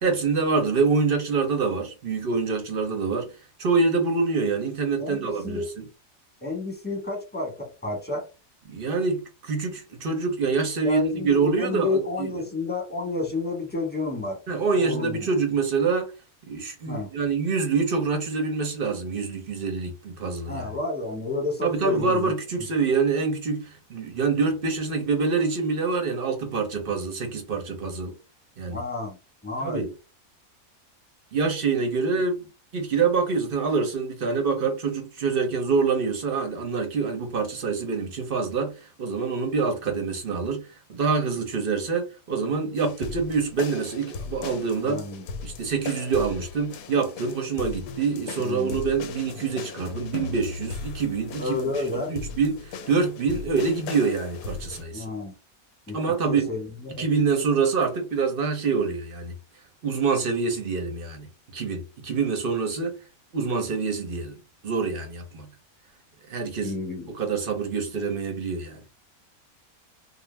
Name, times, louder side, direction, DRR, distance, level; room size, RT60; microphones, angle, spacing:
voice 1, 0.0-3.3 3.6-5.9 8.7-12.4 14.5-16.1 16.5-20.6 21.6-28.1 28.6-28.8 29.6-29.9 31.3-32.4 32.7-40.6 40.9-45.1 45.4-51.6 51.9-55.0 55.9-56.6 56.9-59.3 59.8-61.3 61.5-63.0 63.3-64.4 64.6-65.5 66.3-66.8 67.1-68.8, right 4 dB, 50° right, 0.8 m, -26 dB
voice 2, 5.0-5.7 6.4-8.3 10.8-14.4 14.7-15.3 16.9-17.1 20.5-22.3 28.7-29.2 29.4-29.9 44.8-45.2 48.4-48.8 51.4-52.1 54.9-55.3 55.9-57.0 66.6-67.1, left 3 dB, 5° left, 1.1 m, -30 dB
sound 1, 42.8-54.8, left 5 dB, 80° left, 1.0 m, -38 dB
2.5 x 2.1 x 3.2 m
omnidirectional pair, 1.5 m